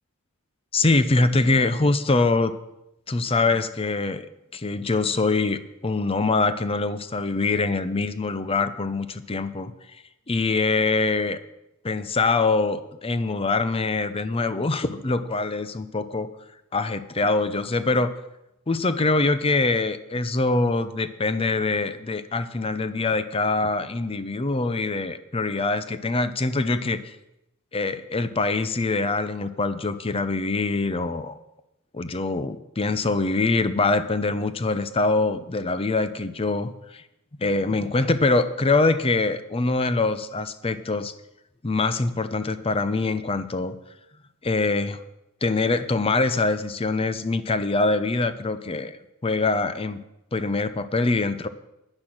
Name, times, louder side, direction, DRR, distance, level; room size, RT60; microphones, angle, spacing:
voice 1, 0.7-2.5 3.1-4.3 4.5-10.0 10.3-11.4 11.8-16.3 16.7-18.1 18.7-27.1 27.7-31.4 31.9-37.0 37.4-41.1 41.6-43.8 44.4-45.0 45.4-50.0 50.3-51.5, left 3 dB, 25° left, 12 dB, 0.6 m, -24 dB
10.0 x 9.8 x 6.1 m, 0.88 s
head